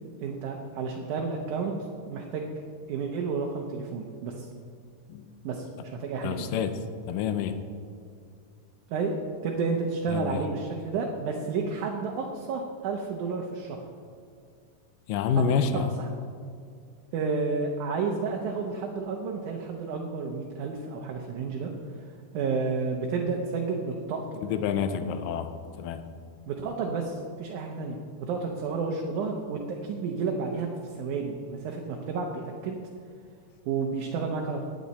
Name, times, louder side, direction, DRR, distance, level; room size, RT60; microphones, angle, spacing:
voice 1, 0.2-1.7 2.1-2.5 2.9-4.5 5.4-6.5 8.9-9.1 9.4-13.8 15.7-16.1 17.1-21.7 22.3-24.4 26.5-32.8 33.7-34.6, right 4 dB, 70° right, 1 dB, 2.2 m, -31 dB
voice 2, 6.2-6.7 7.1-7.6 10.1-10.5 15.1-16.0 24.4-26.1, left 6 dB, 80° left, 9 dB, 2.3 m, -28 dB
18.5 x 8.9 x 4.2 m, 2.2 s
omnidirectional pair, 3.9 m